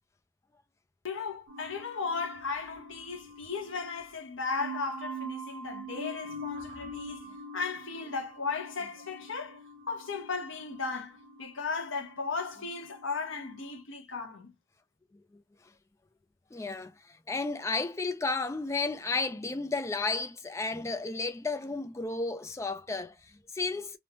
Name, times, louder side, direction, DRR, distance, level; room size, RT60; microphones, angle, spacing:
voice 1, 1.0-7.3 7.5-14.5, left 4 dB, 80° left, 0.8 m, -36 dB
sound 1, 1.5-13.7, right 1 dB, 70° right, 0.8 m, -44 dB
voice 2, 16.5-24.0, left 3 dB, 15° left, 0.3 m, -33 dB
3.1 x 2.0 x 2.9 m
head